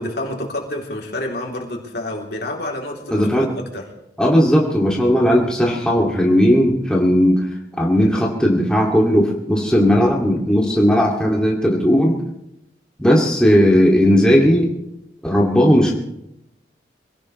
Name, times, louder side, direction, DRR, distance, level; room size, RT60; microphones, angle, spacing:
voice 1, 0.0-3.8, left 1 dB, 70° left, 0 dB, 3.2 m, -28 dB
voice 2, 3.1-3.5 4.2-7.5 7.8-12.2 13.0-14.7 15.2-15.9, equal, 5° left, -3 dB, 2.3 m, -16 dB
25.0 x 17.0 x 3.2 m, 0.83 s
head